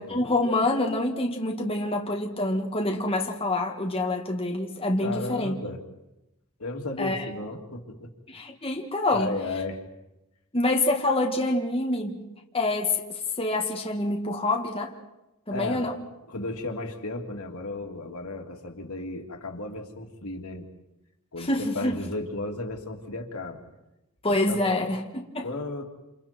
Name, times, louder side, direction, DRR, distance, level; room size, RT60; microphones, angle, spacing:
voice 1, 0.0-5.6 7.0-7.2 8.3-9.3 10.5-12.2 12.5-13.0 13.4-14.9 15.5-16.0 21.4-22.0 24.2-25.5, left 2 dB, 25° left, 1.9 m, -26 dB
voice 2, 5.0-5.8 6.6-8.1 9.1-9.8 15.5-15.9 16.3-20.7 21.3-21.5 21.7-23.6 24.3-24.9 25.4-25.8, left 2 dB, 85° left, 3.0 m, -34 dB
28.5 x 28.5 x 4.5 m
head